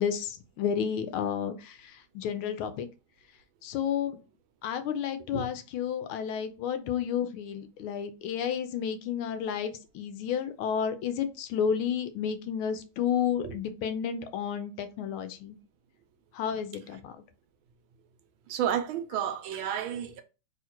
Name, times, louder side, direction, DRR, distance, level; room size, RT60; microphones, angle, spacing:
voice 1, 0.0-2.9 3.6-4.2 4.6-15.6 16.3-17.1, left 8 dB, 80° left, 1.4 m, -31 dB
voice 2, 18.5-20.2, right 9 dB, 75° right, 1.3 m, -31 dB
3.7 x 2.8 x 4.3 m
omnidirectional pair, 2.4 m